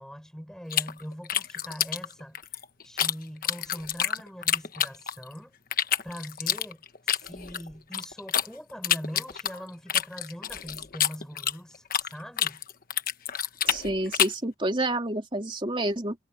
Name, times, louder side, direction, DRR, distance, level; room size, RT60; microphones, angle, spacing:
voice 1, 0.0-2.4 2.8-12.6, equal, 5° left, 5.8 m, -42 dB
sound 1, 0.7-3.1 3.4-5.3 5.7-8.5 8.8-12.1 12.4-14.4, left 9 dB, 45° left, 1.2 m, -27 dB
voice 2, 13.7-16.2, right 1 dB, 25° right, 3.1 m, -29 dB
head